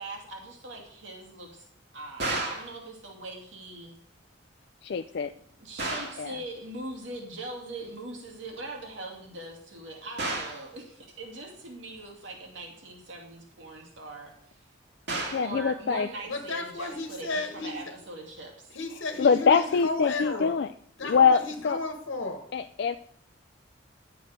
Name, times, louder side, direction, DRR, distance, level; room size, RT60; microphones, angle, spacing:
voice 1, 0.0-1.7 1.9-3.9 5.3-14.6 15.4-18.7, right 2 dB, 75° right, 0 dB, 2.5 m, -41 dB
sound 1, 2.2-2.7 5.8-6.3 10.2-10.7 15.1-15.5, right 2 dB, 55° right, 2.0 m, -32 dB
voice 2, 4.8-5.3 6.2-6.4 15.3-16.1 19.2-20.7 21.0-21.8 22.5-23.0, left 6 dB, 55° left, 9 dB, 0.4 m, -24 dB
voice 3, 16.3-17.8 18.7-20.6 21.0-22.4, left 3 dB, 80° left, 4 dB, 1.2 m, -33 dB
10.5 x 7.7 x 5.1 m, 0.64 s
head